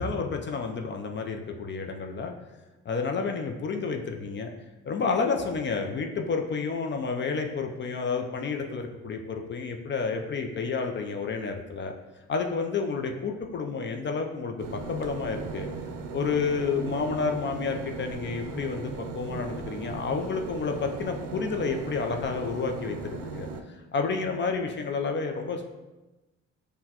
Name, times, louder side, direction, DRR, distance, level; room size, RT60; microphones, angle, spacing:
voice 1, 0.0-2.3 2.9-4.5 4.9-11.9 12.3-15.7 16.1-25.6, left 4 dB, 40° left, 3 dB, 0.4 m, -30 dB
sound 1, 14.6-23.6, right 4 dB, 80° right, 0.5 m, -38 dB
5.8 x 2.2 x 2.8 m, 1.1 s
cardioid pair, 90°, 30 cm